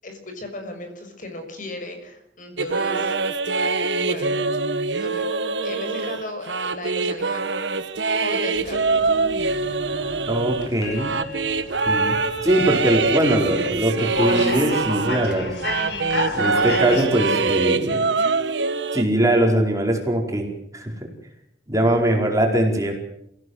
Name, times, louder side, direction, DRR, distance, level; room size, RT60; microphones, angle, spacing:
voice 1, 0.0-3.2 3.9-4.4 5.0-5.3 5.6-7.5 8.2-9.0, left 2 dB, 50° left, 5 dB, 6.3 m, -36 dB
sound 1, 2.6-15.4 15.6-19.0, right 3 dB, 85° right, 1.4 m, -24 dB
sound 2, 8.5-17.1, left 2 dB, 70° left, 5.5 m, -33 dB
voice 2, 10.3-11.1 11.9-15.5 16.3-18.0 18.9-20.5 20.7-20.9 21.7-22.9, right 1 dB, 20° right, 1 dB, 4.8 m, -21 dB
27.0 x 16.5 x 8.0 m, 0.77 s
head